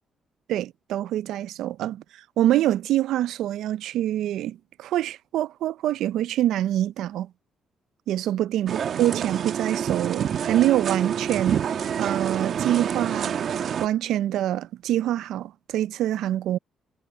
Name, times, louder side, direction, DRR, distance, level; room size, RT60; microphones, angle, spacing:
voice 1, 0.5-7.3 8.1-16.6, right 13 dB, 80° right, 0.4 m, -25 dB
sound 1, 8.7-13.9, right 8 dB, 60° right, 1.1 m, -27 dB
cardioid pair, 90°, 0 cm